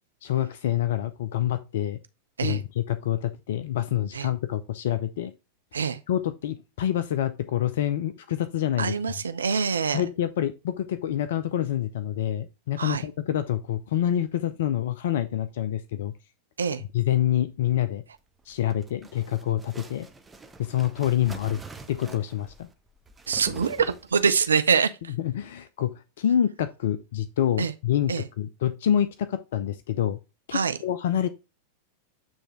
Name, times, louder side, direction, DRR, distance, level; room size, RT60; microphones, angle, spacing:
voice 1, 0.2-2.0 2.4-5.3 6.1-8.9 9.9-16.1 16.9-18.0 18.5-20.1 20.6-21.6 21.9-22.7 25.2-30.2 30.5-31.3, left 11 dB, 55° left, 0.5 m, -27 dB
voice 2, 8.8-10.0 12.8-13.0 16.6-16.8 23.3-25.1 27.6-27.7 28.1-28.2 30.5-30.8, right 6 dB, 70° right, 0.4 m, -25 dB
sound 1, 18.4-24.4, right 3 dB, 10° right, 0.9 m, -45 dB
8.7 x 3.3 x 4.2 m
figure-of-eight pair, 90°, 0 cm